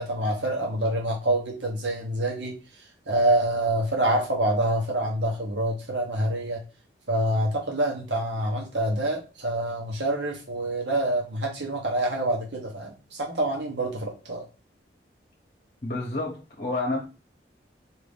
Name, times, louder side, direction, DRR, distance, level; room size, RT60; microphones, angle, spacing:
voice 1, 0.0-2.5 3.1-6.6 7.1-14.4, right 1 dB, 80° right, 1.0 m, -26 dB
voice 2, 15.8-17.0, left 2 dB, 40° left, 0.8 m, -29 dB
4.5 x 2.6 x 3.4 m
head